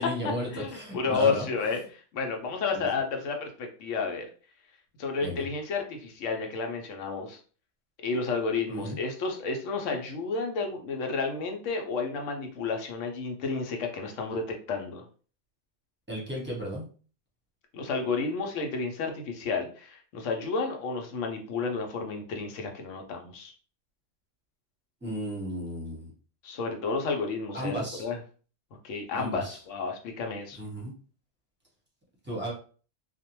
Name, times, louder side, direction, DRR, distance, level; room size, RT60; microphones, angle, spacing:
voice 1, 0.0-1.5 2.7-2.9 5.2-5.4 8.7-9.0 16.1-16.9 25.0-26.1 27.5-28.1 29.1-29.6 30.6-30.9 32.2-32.5, equal, 10° right, -4 dB, 0.7 m, -34 dB
voice 2, 0.5-4.3 5.0-7.4 8.0-15.0 17.7-23.5 26.4-27.7 28.0-28.2 28.8-30.6, left 4 dB, 80° left, 3 dB, 1.0 m, -31 dB
2.5 x 2.1 x 2.9 m, 0.40 s
omnidirectional pair, 1.3 m